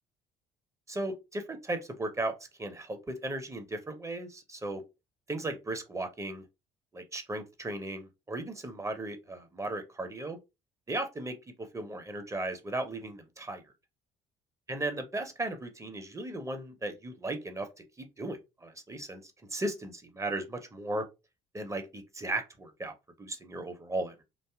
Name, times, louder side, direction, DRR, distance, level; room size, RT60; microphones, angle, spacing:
voice 1, 0.9-4.8 5.3-6.4 6.9-10.4 10.9-13.6 14.7-17.7 18.0-21.0 21.5-24.2, right 2 dB, 15° right, 0.5 m, -36 dB
2.6 x 2.3 x 2.2 m
figure-of-eight pair, 50°, 19 cm